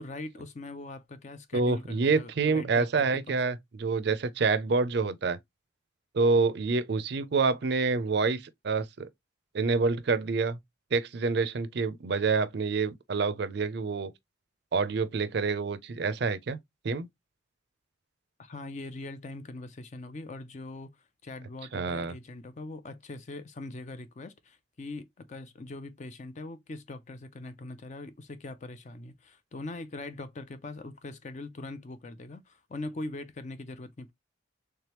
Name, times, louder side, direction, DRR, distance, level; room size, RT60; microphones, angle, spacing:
voice 1, 0.0-3.4 18.4-20.9 21.2-34.1, left 2 dB, 35° left, 0.4 m, -42 dB
voice 2, 1.5-5.4 6.1-9.1 9.5-10.6 10.9-14.1 14.7-16.6 16.8-17.1 21.7-22.1, right 4 dB, 55° right, 0.4 m, -27 dB
3.4 x 3.3 x 2.9 m
head